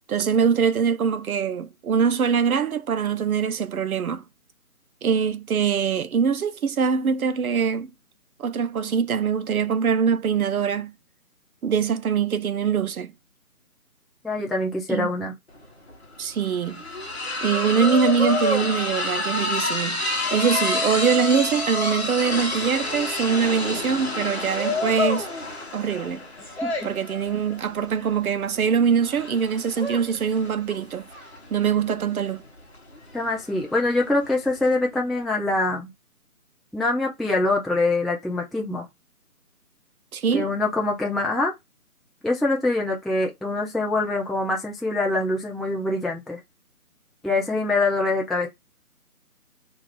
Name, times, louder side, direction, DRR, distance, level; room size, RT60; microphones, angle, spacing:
voice 1, 0.1-4.2 5.0-7.9 8.4-10.9 11.6-13.1 14.9-15.1 16.2-16.8 17.4-20.0 20.3-25.3 25.7-26.2 26.8-31.1 31.5-32.4 40.1-40.5, right 6 dB, 70° right, 0.5 m, -23 dB
voice 2, 14.2-15.3 26.6-26.9 33.1-35.9 36.7-38.9 40.3-41.5 42.2-46.4 47.2-48.5, left 2 dB, ahead, 0.3 m, -24 dB
sound 1, 15.5-15.6 15.9-34.7, left 2 dB, 45° left, 0.8 m, -29 dB
2.4 x 2.3 x 3.0 m
figure-of-eight pair, 180°, 45 cm